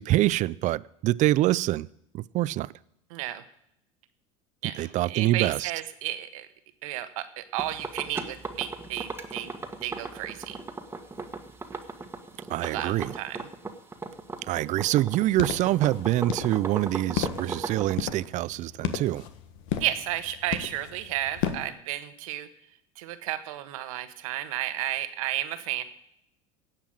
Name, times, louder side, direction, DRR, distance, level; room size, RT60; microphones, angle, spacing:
voice 1, 0.0-1.9 2.1-2.7 4.8-5.7 12.5-13.1 14.5-19.3, right 15 dB, 45° right, 0.4 m, -25 dB
voice 2, 3.1-3.4 4.6-6.5 6.8-9.5 9.8-10.6 12.6-13.5 19.8-22.5 23.0-25.8, right 13 dB, 80° right, 1.3 m, -32 dB
sound 1, 7.6-17.9, right 3 dB, 15° right, 1.5 m, -36 dB
sound 2, 15.2-21.7, left 9 dB, 70° left, 1.4 m, -34 dB
16.5 x 5.8 x 8.8 m
supercardioid pair, 100°, 17 cm